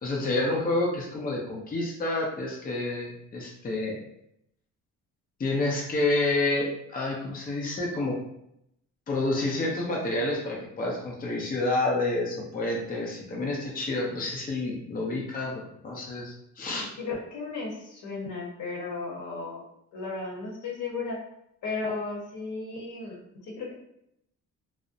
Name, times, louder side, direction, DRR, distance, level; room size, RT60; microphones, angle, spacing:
voice 1, 0.0-4.0 5.4-8.2 9.1-16.9, left 2 dB, 30° left, -2 dB, 0.6 m, -29 dB
voice 2, 17.0-19.6 19.9-21.2 21.6-23.7, left 3 dB, 75° left, -2 dB, 0.9 m, -35 dB
2.5 x 2.1 x 2.4 m, 0.77 s
cardioid pair, 90°, 30 cm